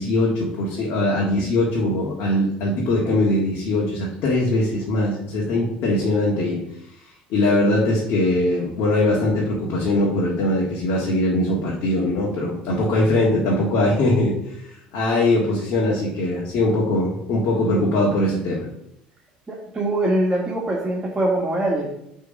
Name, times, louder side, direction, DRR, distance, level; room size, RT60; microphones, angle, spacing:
voice 1, 0.0-6.6 7.3-18.7, left 1 dB, 60° left, -4 dB, 1.8 m, -21 dB
voice 2, 19.5-21.9, right 1 dB, 20° right, -3 dB, 1.6 m, -23 dB
8.3 x 3.7 x 5.2 m, 0.79 s
hypercardioid pair, 65°, 4 cm